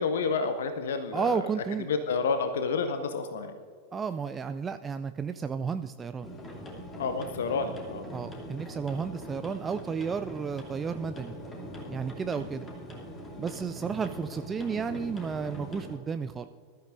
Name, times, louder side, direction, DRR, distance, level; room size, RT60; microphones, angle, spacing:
voice 1, 0.0-1.5 1.8-3.5 7.0-8.0 12.4-12.5, left 4 dB, 60° left, 9 dB, 0.7 m, -30 dB
voice 2, 1.1-1.9 3.9-6.3 8.1-11.3 11.9-12.7 13.4-16.5, right 6 dB, 20° right, 9 dB, 0.3 m, -32 dB
sound 1, 6.2-16.0, equal, 20° left, 2.7 m, -42 dB
21.0 x 13.0 x 2.6 m, 2.2 s
figure-of-eight pair, 90°, 0 cm